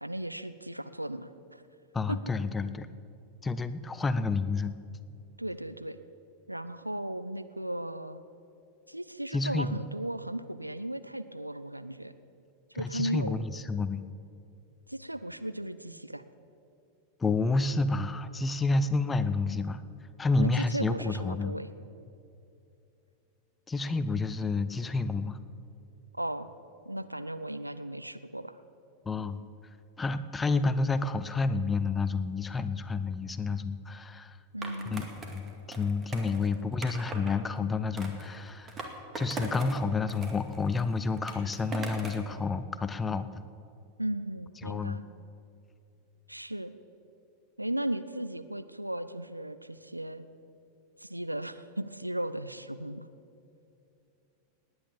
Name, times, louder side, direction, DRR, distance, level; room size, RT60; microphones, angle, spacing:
voice 1, 0.0-1.6 2.1-2.2 5.4-6.0 6.5-8.2 8.9-12.1 12.7-13.4 14.9-16.2 20.4-21.7 26.1-26.5 26.9-28.6 34.5-35.1 36.3-36.4 44.0-45.0 46.3-46.7 47.6-50.3 51.0-53.1, right 1 dB, 85° right, 13 dB, 0.6 m, -36 dB
voice 2, 1.9-2.9 3.4-4.7 9.3-9.7 12.7-14.0 17.2-19.8 20.2-21.6 23.7-25.4 29.1-29.4 30.0-34.4 34.9-35.0 35.3-38.7 39.2-43.4 44.6-45.0, left 3 dB, 15° left, 13 dB, 0.7 m, -29 dB
Skateboard, 34.6-37.3 38.0-39.8 40.1-42.3, right 3 dB, 20° right, 2.2 m, -41 dB
18.5 x 9.7 x 7.2 m, 2.6 s
figure-of-eight pair, 90°, 0 cm